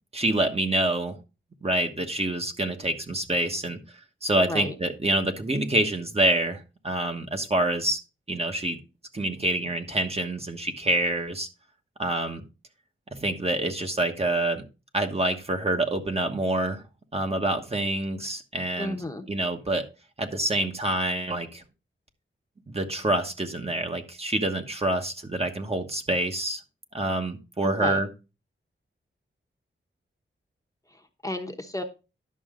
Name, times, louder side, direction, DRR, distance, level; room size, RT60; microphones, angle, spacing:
voice 1, 0.1-1.2 1.6-3.8 4.2-8.0 8.3-8.8 9.1-11.5 12.0-12.4 13.1-14.6 14.9-16.8 17.1-19.0 19.3-19.9 20.2-21.6 22.7-26.6 26.9-28.1, right 1 dB, 30° right, 4 dB, 1.2 m, -26 dB
voice 2, 4.3-4.7 18.8-19.2 27.6-28.0 30.9-31.8, left 1 dB, 15° left, 4 dB, 1.0 m, -33 dB
11.0 x 6.3 x 3.7 m, 0.30 s
wide cardioid pair, 115°, 21 cm